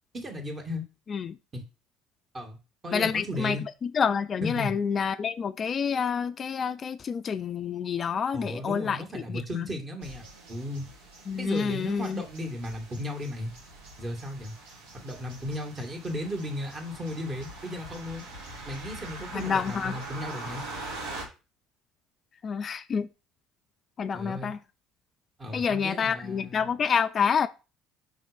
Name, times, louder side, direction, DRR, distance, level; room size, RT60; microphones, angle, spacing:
voice 1, 0.1-0.8 1.5-1.6 2.3-2.6 2.8-3.6 4.4-4.7 8.3-10.9 11.4-13.5 14.0-14.5 14.9-18.3 18.7-20.6 24.1-24.5 25.4-26.7, left 1 dB, 30° right, 2.3 m, -35 dB
voice 2, 2.9-3.6 3.8-9.7 11.3-12.2 19.3-19.9 22.4-23.1 24.0-24.6 25.5-27.5, left 6 dB, 40° left, 0.4 m, -28 dB
sound 1, 10.0-21.2, right 2 dB, 75° right, 2.0 m, -43 dB
5.4 x 3.8 x 5.2 m
hypercardioid pair, 65°, 0 cm